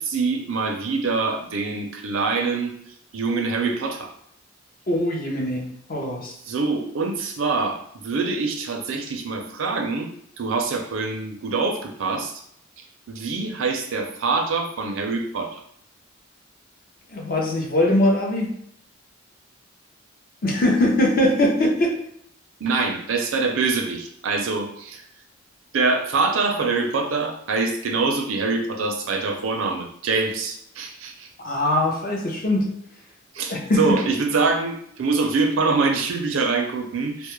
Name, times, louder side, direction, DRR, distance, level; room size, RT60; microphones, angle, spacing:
voice 1, 0.0-2.7 3.1-4.1 6.5-12.3 13.1-15.6 22.6-25.0 25.7-31.3 33.3-37.3, right 4 dB, 75° right, 3 dB, 0.4 m, -24 dB
voice 2, 4.9-6.3 17.1-18.5 20.4-21.9 31.4-32.8 33.5-33.8, left 1 dB, 45° left, 0 dB, 0.5 m, -21 dB
2.2 x 2.0 x 3.0 m, 0.68 s
head